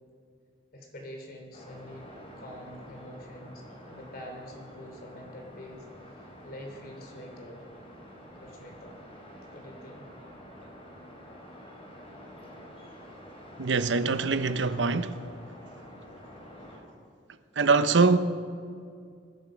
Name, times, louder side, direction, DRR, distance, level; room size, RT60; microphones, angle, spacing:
voice 1, 0.7-2.1 2.4-5.9 6.2-7.6 8.3-9.0 9.5-10.1, left 1 dB, 55° left, 3.2 m, -45 dB
sound 1, 1.5-16.8, equal, 35° left, 3.6 m, -48 dB
voice 2, 13.6-15.2 17.6-18.2, right 4 dB, 85° right, 0.8 m, -23 dB
26.0 x 10.5 x 5.2 m
head